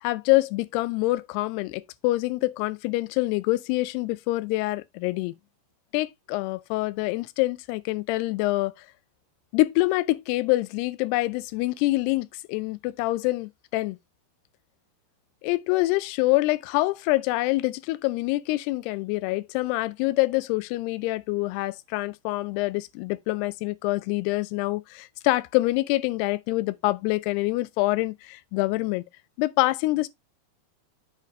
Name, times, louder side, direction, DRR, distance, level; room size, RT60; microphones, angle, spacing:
voice 1, 0.0-5.3 5.9-8.9 9.5-14.0 15.4-29.0 29.4-30.1, left 20 dB, 85° left, 2.6 m, -26 dB
8.3 x 5.2 x 3.1 m
omnidirectional pair, 4.7 m